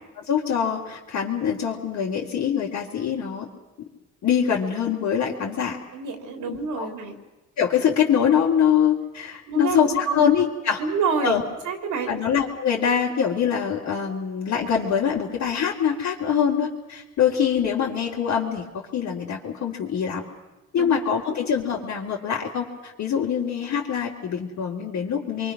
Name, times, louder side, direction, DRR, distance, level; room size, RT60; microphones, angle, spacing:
voice 1, 0.2-3.5 4.2-5.8 6.5-6.9 7.6-10.8 11.2-11.4 12.1-20.2 20.7-25.5, left 8 dB, 65° left, -6 dB, 3.5 m, -24 dB
voice 2, 5.9-7.1 9.5-10.3 10.8-11.4 11.7-12.2 20.8-21.0, right 5 dB, 80° right, 5 dB, 3.7 m, -28 dB
27.0 x 23.5 x 6.2 m, 1.1 s
cardioid pair, 90°, 30 cm